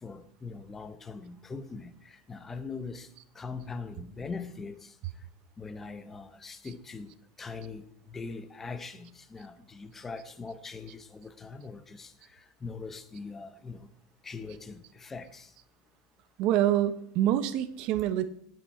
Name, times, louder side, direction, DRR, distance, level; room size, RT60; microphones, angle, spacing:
voice 1, 0.0-3.1 3.3-4.9 5.6-13.9 14.2-15.5, left 4 dB, 15° left, 0.8 m, -42 dB
voice 2, 16.4-18.3, right 12 dB, 45° right, 0.9 m, -26 dB
18.0 x 6.1 x 4.4 m
supercardioid pair, 155°, 2 cm